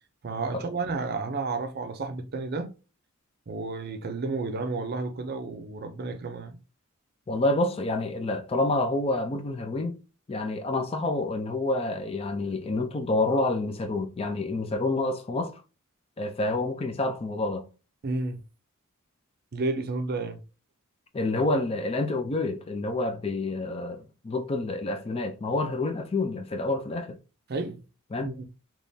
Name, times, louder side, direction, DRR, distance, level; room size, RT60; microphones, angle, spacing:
voice 1, 0.2-2.8 3.5-6.6 18.0-18.4 19.5-20.4 27.5-27.8 28.2-28.5, right 3 dB, 45° right, 0.5 m, -31 dB
voice 2, 7.3-10.0 10.3-15.6 16.2-17.6 21.1-27.2 28.1-28.3, left 2 dB, 25° left, 0.4 m, -28 dB
3.6 x 3.0 x 2.7 m
head